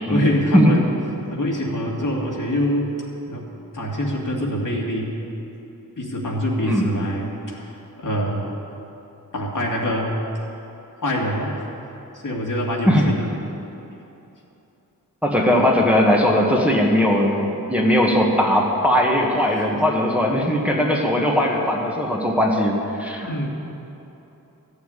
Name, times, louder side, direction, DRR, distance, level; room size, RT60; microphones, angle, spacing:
voice 1, 0.1-0.9 1.3-2.9 3.3-3.5 3.7-5.1 6.0-8.5 9.3-10.2 11.0-11.6 12.1-13.3 19.7-19.8 21.1-21.4 23.3-23.5, equal, 60° left, -2 dB, 2.4 m, -25 dB
voice 2, 15.2-23.5, equal, 5° right, -2 dB, 1.6 m, -19 dB
14.0 x 7.1 x 9.8 m, 3.0 s
wide cardioid pair, 90°, 35 cm